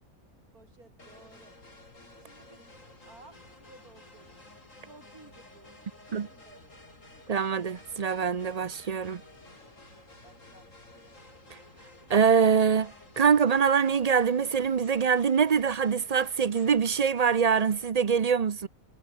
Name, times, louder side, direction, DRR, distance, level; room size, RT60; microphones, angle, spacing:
voice 1, 0.5-1.6 2.2-4.4 4.8-6.9 10.2-10.7, right 3 dB, 75° right, 4.8 m, -56 dB
sound 1, 1.0-17.9, left 2 dB, 60° left, 5.7 m, -53 dB
voice 2, 7.3-9.2 12.1-18.7, right 6 dB, 45° right, 0.5 m, -24 dB
omnidirectional pair, 1.5 m